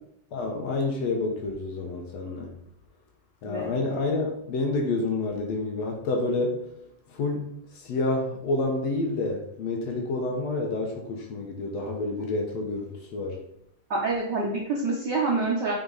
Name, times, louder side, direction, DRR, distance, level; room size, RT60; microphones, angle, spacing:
voice 1, 0.3-2.5 3.4-6.7 7.1-7.5 7.8-13.4, left 2 dB, 65° left, 1 dB, 2.0 m, -28 dB
voice 2, 13.9-15.7, right 3 dB, 65° right, -3 dB, 1.1 m, -27 dB
7.7 x 4.6 x 4.0 m, 0.74 s
omnidirectional pair, 3.6 m